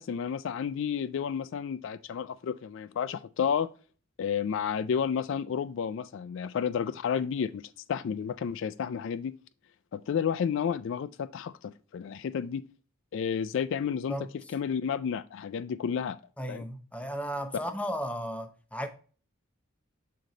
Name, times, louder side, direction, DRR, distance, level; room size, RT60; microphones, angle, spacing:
voice 1, 0.0-3.7 4.2-9.3 9.9-12.6 13.1-14.2 14.5-16.2 16.5-16.6, left 7 dB, 60° left, 0.3 m, -31 dB
voice 2, 16.4-18.9, equal, 5° left, 0.7 m, -35 dB
6.5 x 3.8 x 3.9 m
head